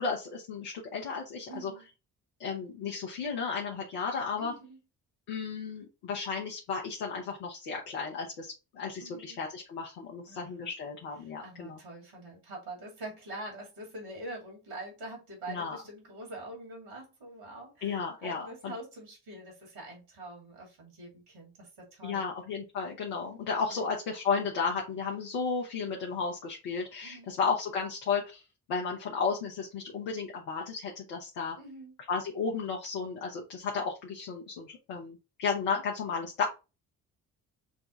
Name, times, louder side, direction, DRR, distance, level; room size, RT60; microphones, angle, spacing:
voice 1, 0.0-1.7 2.4-4.5 5.3-11.8 15.5-15.8 17.8-18.7 22.0-28.4 28.7-31.6 32.1-36.4, left 5 dB, 75° left, 1.0 m, -33 dB
voice 2, 1.5-1.9 4.4-4.8 9.0-9.4 10.3-10.7 11.4-22.3 23.7-23.9 27.0-27.3 31.6-32.0, right 2 dB, 70° right, 2.8 m, -45 dB
6.1 x 2.3 x 3.8 m
figure-of-eight pair, 40°, 46 cm